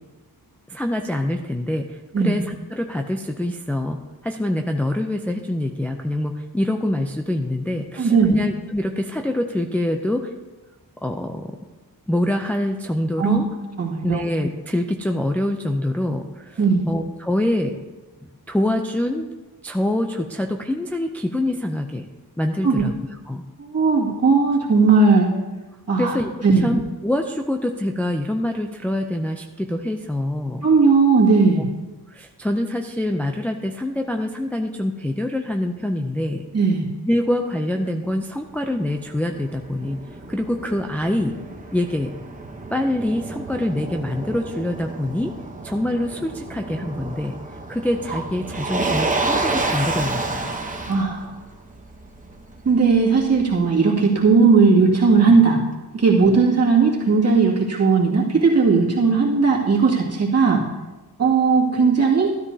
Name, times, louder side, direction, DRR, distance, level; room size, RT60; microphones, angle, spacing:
voice 1, 0.7-10.3 11.0-11.6 12.1-13.5 14.0-16.6 16.9-17.8 18.5-19.3 19.6-22.1 22.4-22.9 23.3-23.4 25.3-25.4 26.0-26.3 26.6-30.7 32.1-36.4 37.1-40.0 40.3-41.3 41.7-42.1 42.7-45.3 45.6-47.4 47.7-50.5, left 1 dB, 5° left, 3 dB, 0.4 m, -25 dB
voice 2, 8.0-8.3 13.2-13.4 13.8-14.2 16.6-16.9 22.6-22.9 23.6-25.3 25.9-26.1 26.4-26.6 30.6-31.6 36.5-36.8 50.9-51.2 52.7-55.6 55.9-60.6 61.2-62.3, right 4 dB, 40° right, -4 dB, 2.2 m, -17 dB
Motor vehicle (road), 38.5-53.6, right 3 dB, 20° right, 0.9 m, -30 dB
13.0 x 13.0 x 2.7 m, 1.2 s
wide cardioid pair, 170°, 37 cm